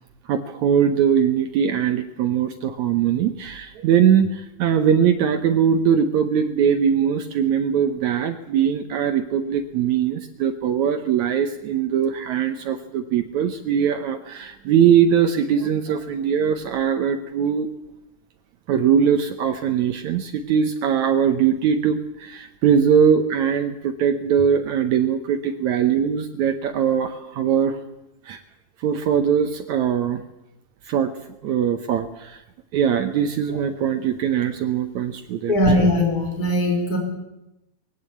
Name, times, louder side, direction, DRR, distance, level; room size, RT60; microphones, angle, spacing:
voice 1, 0.3-17.7 18.7-27.8 28.2-28.4 28.8-30.2 30.9-31.1 31.4-32.4 32.7-35.5, right 8 dB, 75° right, 8 dB, 1.7 m, -21 dB
voice 2, 35.5-37.0, left 1 dB, 25° left, 3 dB, 4.7 m, -20 dB
21.0 x 16.0 x 8.5 m, 0.92 s
omnidirectional pair, 4.5 m